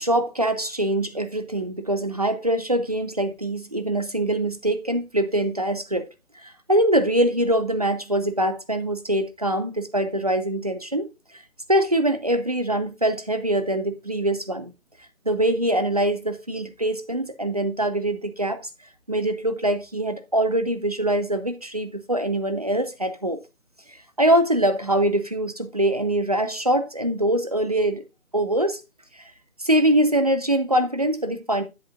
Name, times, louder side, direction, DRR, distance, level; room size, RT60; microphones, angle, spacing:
voice 1, 0.0-6.1 6.4-11.1 11.7-14.7 15.3-18.7 19.1-23.4 24.2-28.0 28.3-28.8 29.6-31.6, right 1 dB, 30° right, 0.5 m, -23 dB
9.8 x 7.9 x 2.4 m
figure-of-eight pair, 150°, 41 cm